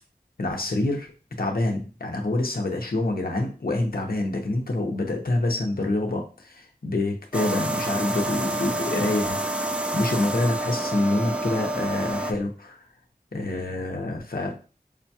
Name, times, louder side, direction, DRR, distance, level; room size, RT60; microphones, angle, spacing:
voice 1, 0.4-1.1 1.4-9.4 9.9-12.8 13.3-14.5, left 2 dB, 65° left, 2 dB, 0.7 m, -26 dB
sound 1, 7.3-12.3, right 1 dB, 5° right, 0.4 m, -28 dB
5.0 x 2.3 x 2.8 m, 0.36 s
wide cardioid pair, 45°, 16 cm